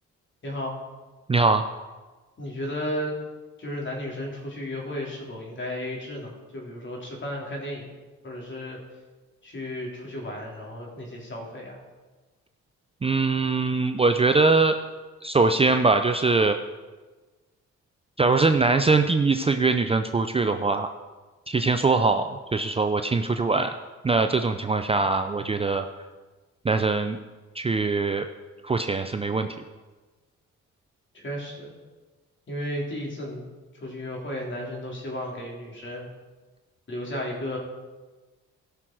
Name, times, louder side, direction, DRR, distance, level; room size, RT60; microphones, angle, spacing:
voice 1, 0.4-0.7 2.4-3.2 3.6-8.0 8.2-8.8 9.4-11.8 31.1-31.7 32.5-33.5 33.8-36.1 36.9-37.6, left 1 dB, 40° left, -2 dB, 3.5 m, -34 dB
voice 2, 1.3-1.6 13.0-14.8 15.2-16.6 18.2-20.9 21.5-23.7 24.0-25.9 26.6-27.2 27.5-28.3 28.6-29.5, right 3 dB, 20° right, 7 dB, 0.5 m, -22 dB
16.0 x 6.3 x 4.6 m, 1.3 s
cardioid pair, 90°, 30 cm